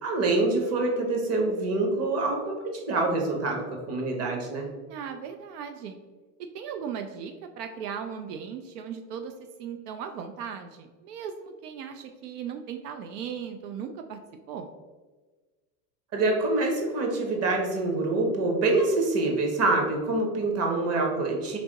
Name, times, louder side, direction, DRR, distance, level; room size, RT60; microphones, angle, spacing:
voice 1, 0.0-2.6 2.9-4.7 16.1-21.6, right 2 dB, 30° right, 2 dB, 1.0 m, -26 dB
voice 2, 4.9-6.0 6.5-9.3 9.6-14.2 14.5-14.7, right 7 dB, 80° right, 6 dB, 0.5 m, -37 dB
3.4 x 2.9 x 3.9 m, 1.3 s
hypercardioid pair, 110°, 47 cm